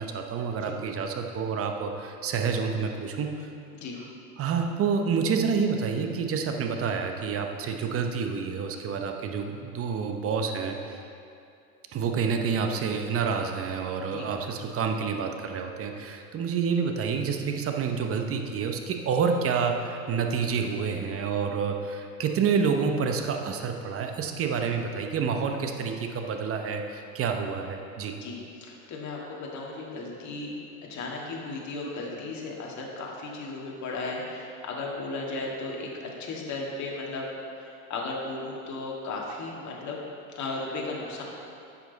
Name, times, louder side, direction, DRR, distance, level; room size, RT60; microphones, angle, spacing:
voice 1, 0.0-3.5 4.4-11.0 11.9-28.1, right 6 dB, 30° right, 4 dB, 0.9 m, -28 dB
voice 2, 28.2-30.5 30.9-37.3 37.6-40.0 40.3-41.2, left 3 dB, 40° left, -2 dB, 2.1 m, -35 dB
10.5 x 7.3 x 4.1 m, 2.6 s
hypercardioid pair, 95°, 44 cm